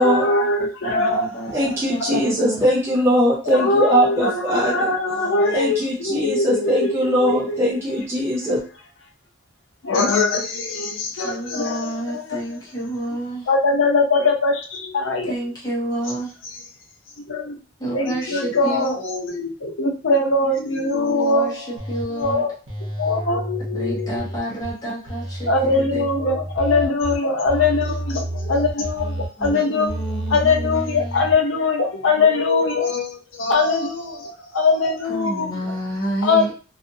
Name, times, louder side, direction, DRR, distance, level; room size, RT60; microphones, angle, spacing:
voice 1, 0.0-2.2 3.4-7.6 9.8-12.2 13.5-15.3 17.3-17.6 17.9-21.8 22.1-22.5 23.0-24.2 25.5-30.0 30.3-35.5 36.2-36.5, left 3 dB, 85° left, 2 dB, 0.6 m, -22 dB
voice 2, 0.8-2.6 7.0-7.4 11.1-13.5 15.3-16.3 17.8-18.9 20.7-22.4 23.7-26.1 29.4-31.3 35.0-36.5, right 1 dB, 20° left, -6 dB, 0.8 m, -29 dB
voice 3, 1.5-4.9 5.5-8.6, equal, 15° right, -6 dB, 0.5 m, -20 dB
sound 1, 21.8-22.3 22.7-24.7 25.1-27.2 27.5-29.5 29.9-31.3, right 1 dB, 70° right, 0.9 m, -30 dB
2.5 x 2.5 x 2.6 m, 0.36 s
head